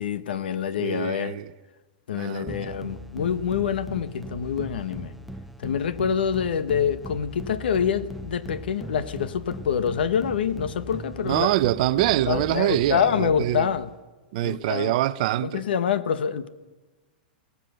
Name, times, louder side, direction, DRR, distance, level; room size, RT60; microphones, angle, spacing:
voice 1, 0.0-1.4 2.1-5.1 5.6-11.5 12.3-13.9 14.4-14.9 15.4-16.5, left 7 dB, 85° left, 1.3 m, -26 dB
voice 2, 0.8-1.5 2.1-2.7 11.2-13.7 14.3-15.6, right 15 dB, 50° right, 0.7 m, -25 dB
sound 1, 2.5-14.0, equal, ahead, 0.7 m, -39 dB
22.5 x 17.0 x 6.8 m
supercardioid pair, 160°, 5 cm